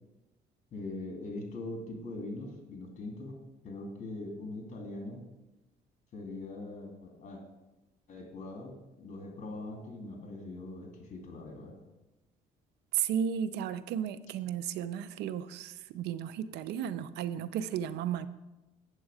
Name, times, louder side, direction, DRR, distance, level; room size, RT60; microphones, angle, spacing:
voice 1, 0.7-3.4 3.6-5.2 6.1-7.4 8.1-11.8, left 2 dB, 45° left, 2 dB, 2.5 m, -42 dB
voice 2, 12.9-18.3, right 9 dB, 80° right, 14 dB, 0.5 m, -34 dB
8.0 x 7.6 x 4.9 m, 1.0 s
cardioid pair, 110°, 17 cm